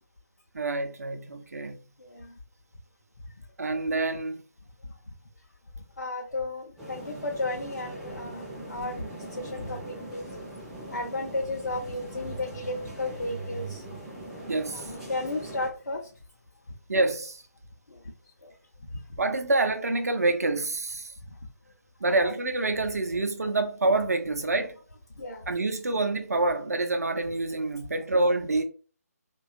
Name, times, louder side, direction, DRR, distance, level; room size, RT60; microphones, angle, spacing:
voice 1, 0.5-1.8 3.6-4.4 14.5-14.8 16.9-17.4 19.2-21.1 22.0-24.8 25.5-28.6, right 2 dB, 65° right, 0.5 m, -27 dB
voice 2, 2.0-2.3 6.0-9.0 9.4-10.3 10.9-14.0 14.7-16.0 17.9-18.0 18.4-18.5 22.1-22.3 25.2-25.5, left 2 dB, 75° left, 0.6 m, -34 dB
sound 1, 6.8-15.7, right 1 dB, ahead, 0.4 m, -41 dB
2.7 x 2.3 x 2.5 m
figure-of-eight pair, 150°, 9 cm